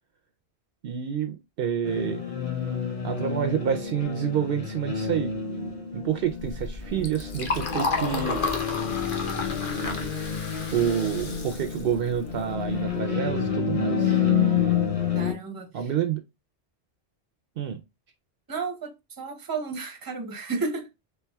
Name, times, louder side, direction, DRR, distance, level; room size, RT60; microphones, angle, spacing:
voice 1, 0.8-2.2 3.0-5.3 5.9-8.6 10.7-14.2 15.7-16.2 17.6-17.8, right 8 dB, 65° right, 0.7 m, -28 dB
sound 1, 1.8-15.3, left 7 dB, 35° left, 1.1 m, -29 dB
Liquid, 6.2-12.9, left 3 dB, 55° left, 1.0 m, -33 dB
voice 2, 15.1-15.9 18.5-20.9, right 4 dB, 25° right, 0.7 m, -33 dB
4.4 x 3.7 x 2.2 m
omnidirectional pair, 1.1 m